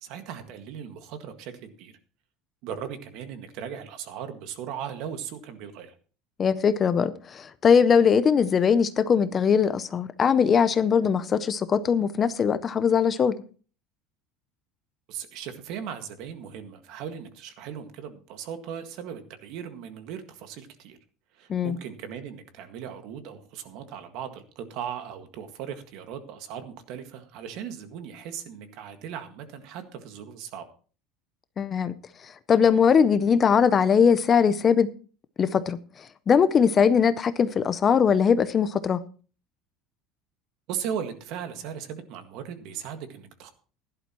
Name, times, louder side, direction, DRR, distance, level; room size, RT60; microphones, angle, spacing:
voice 1, 0.0-1.9 2.6-6.0 15.1-21.0 21.3-30.6 40.7-43.5, right 8 dB, 50° right, 1.7 m, -38 dB
voice 2, 6.4-13.4 21.5-21.8 31.6-31.9 32.2-34.9 35.4-39.0, left 6 dB, 20° left, 0.5 m, -21 dB
16.0 x 11.0 x 3.0 m
cardioid pair, 180°, 0 cm